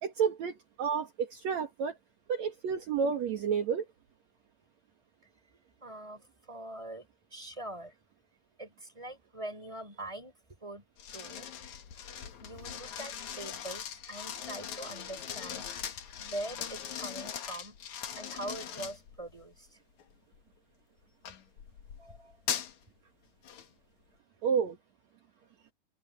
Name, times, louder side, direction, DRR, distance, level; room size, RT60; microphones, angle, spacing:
voice 1, 0.0-2.0 2.3-3.9 24.4-24.8, right 6 dB, 60° right, 2.8 m, -30 dB
voice 2, 5.8-7.1 7.3-7.9 8.6-10.3 10.6-10.8 11.1-11.5 12.4-15.7 16.2-17.8 18.2-19.8 22.0-22.4, right 1 dB, 10° right, 5.6 m, -43 dB
sound 1, 11.0-19.4 20.0-20.3 21.2-22.8 23.4-23.7, left 9 dB, 65° left, 2.9 m, -40 dB
open air
omnidirectional pair, 3.8 m